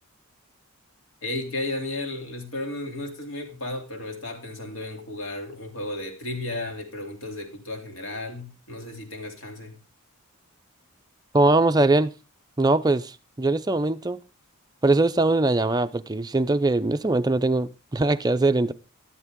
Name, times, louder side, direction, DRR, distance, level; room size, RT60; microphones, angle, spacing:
voice 1, 1.2-9.8, left 2 dB, 60° left, 3.0 m, -34 dB
voice 2, 11.3-12.1 12.6-14.2 14.8-18.7, right 2 dB, 15° right, 0.5 m, -21 dB
13.0 x 11.0 x 3.7 m
head